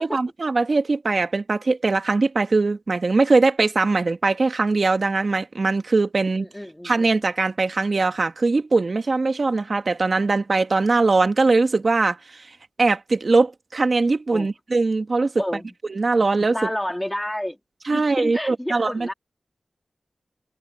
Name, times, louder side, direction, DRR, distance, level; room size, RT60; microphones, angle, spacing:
voice 1, 0.0-6.4 6.8-12.5 12.8-15.3 15.9-16.7 17.8-19.1, right 3 dB, 50° right, 1.7 m, -21 dB
voice 2, 6.5-6.9 14.3-14.5 15.4-15.7 16.5-17.6 17.9-19.1, left 1 dB, 10° left, 2.6 m, -29 dB
wide cardioid pair, 75°, 0 cm